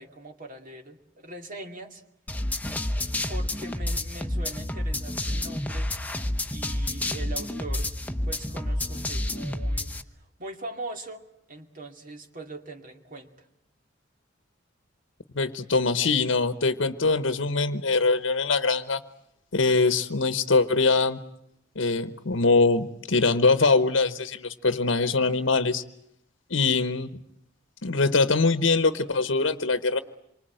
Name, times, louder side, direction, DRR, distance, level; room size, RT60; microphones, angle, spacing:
voice 1, 0.0-2.0 3.3-8.0 8.2-13.5, right 2 dB, 45° right, 5 dB, 2.4 m, -41 dB
sound 1, 2.3-10.0, left 1 dB, 10° left, 1.0 m, -29 dB
voice 2, 15.3-19.0 19.5-21.2 21.8-25.8 26.5-27.1 27.8-30.0, left 3 dB, 80° left, 12 dB, 1.1 m, -23 dB
26.5 x 24.5 x 9.1 m, 0.78 s
head